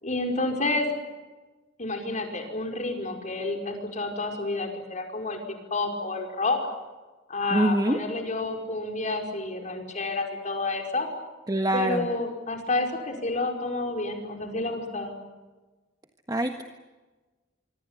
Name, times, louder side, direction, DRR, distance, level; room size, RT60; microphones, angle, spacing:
voice 1, 0.0-0.9 1.8-6.6 7.3-11.1 11.7-15.2, left 2 dB, 40° left, 3 dB, 5.3 m, -29 dB
voice 2, 7.5-8.0 11.5-12.1 16.3-16.6, right 1 dB, 20° right, 5 dB, 1.5 m, -24 dB
26.0 x 25.0 x 8.4 m, 1.2 s
head